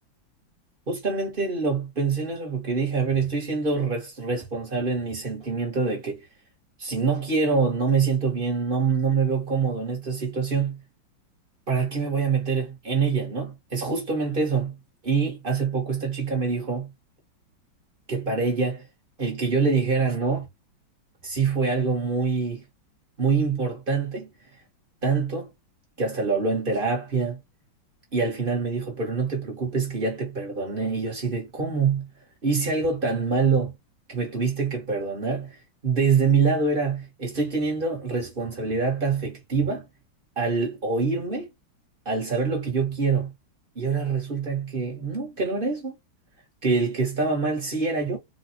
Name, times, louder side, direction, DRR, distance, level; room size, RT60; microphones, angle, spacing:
voice 1, 0.9-6.3 6.8-10.8 11.7-14.7 15.0-16.9 18.1-18.8 19.2-20.4 21.2-22.6 23.2-24.3 25.0-25.5 26.0-27.4 28.1-32.1 32.4-33.7 34.1-35.6 35.8-39.8 40.3-41.5 42.0-43.3 43.7-45.9 46.6-48.2, right 4 dB, 30° right, 1.5 m, -25 dB
4.2 x 2.6 x 2.8 m
omnidirectional pair, 2.2 m